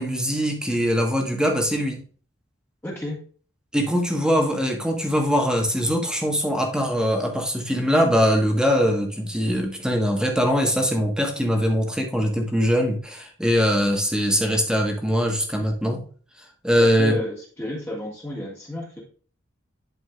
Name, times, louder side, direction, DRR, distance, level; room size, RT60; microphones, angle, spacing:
voice 1, 0.0-2.0 3.7-16.0 16.6-17.1, equal, 5° right, 2 dB, 1.4 m, -22 dB
voice 2, 2.8-3.2 16.8-19.0, left 1 dB, 15° left, -5 dB, 2.0 m, -32 dB
11.0 x 5.1 x 2.5 m, 0.42 s
head